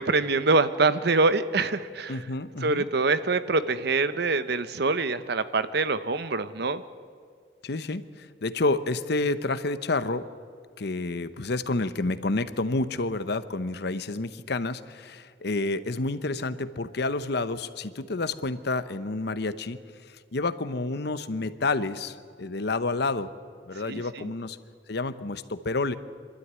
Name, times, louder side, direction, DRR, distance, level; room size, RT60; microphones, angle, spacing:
voice 1, 0.0-2.3 2.6-6.8 23.9-24.3, right 3 dB, 65° right, 12 dB, 0.9 m, -25 dB
voice 2, 2.1-2.9 7.6-10.2 10.8-19.8 20.3-23.3 23.7-24.6 24.9-26.0, left 3 dB, 65° left, 12 dB, 0.9 m, -29 dB
25.0 x 12.5 x 9.6 m, 2.1 s
head